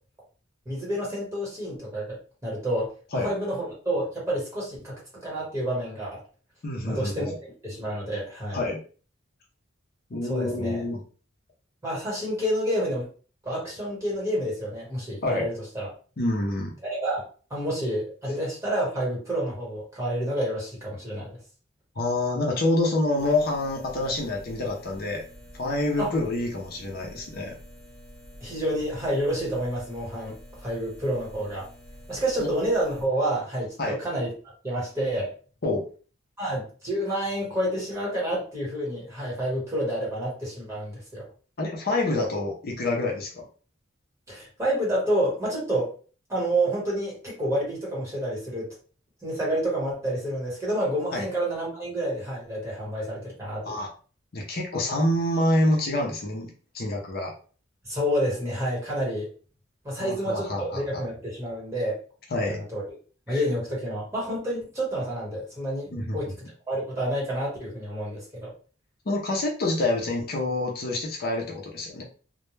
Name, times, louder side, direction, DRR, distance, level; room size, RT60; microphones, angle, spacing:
voice 1, 0.6-6.2 6.9-7.2 7.6-8.6 10.3-10.8 11.8-13.1 13.4-15.9 16.8-17.2 17.5-21.4 26.0-26.1 28.4-31.7 32.1-34.3 34.6-35.3 36.4-41.3 44.3-45.9 46.3-48.7 49.2-53.8 57.8-59.3 59.8-62.0 62.5-62.8 63.3-66.3 66.7-68.5, right 1 dB, 15° right, -5 dB, 1.2 m, -29 dB
voice 2, 6.6-7.3 8.5-8.8 10.1-11.0 15.2-15.5 16.2-16.7 22.0-25.2 25.5-27.5 32.4-32.5 33.8-33.9 35.6-35.8 41.6-43.5 51.1-51.2 53.7-53.9 54.3-57.3 59.9-60.8 62.3-62.6 63.3-63.4 65.9-66.3 69.1-72.0, left 2 dB, 50° left, 0 dB, 0.5 m, -27 dB
sound 1, 23.2-33.1, equal, 10° left, 0.7 m, -48 dB
2.2 x 2.1 x 3.0 m, 0.39 s
head